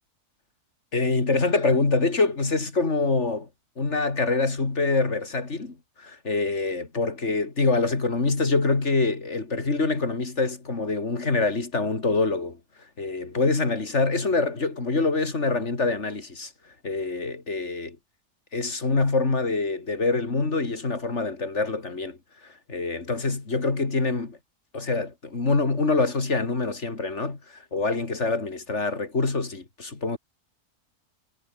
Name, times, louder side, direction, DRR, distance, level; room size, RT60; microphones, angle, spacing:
voice 1, 0.9-3.5 3.8-12.6 13.0-16.5 16.8-18.0 18.5-22.2 22.7-24.4 24.7-27.4 27.7-30.2, left 3 dB, 50° left, 3.3 m, -25 dB
omnidirectional pair, 1.6 m